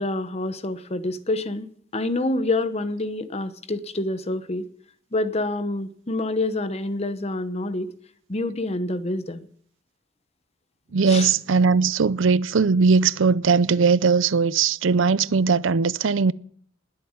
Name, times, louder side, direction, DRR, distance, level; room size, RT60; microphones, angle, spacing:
voice 1, 0.0-1.7 1.9-4.7 5.1-7.9 8.3-9.5 11.1-11.3, left 2 dB, 35° left, 1.0 m, -27 dB
voice 2, 10.9-16.3, right 5 dB, 80° right, 0.6 m, -19 dB
20.5 x 7.8 x 8.9 m
head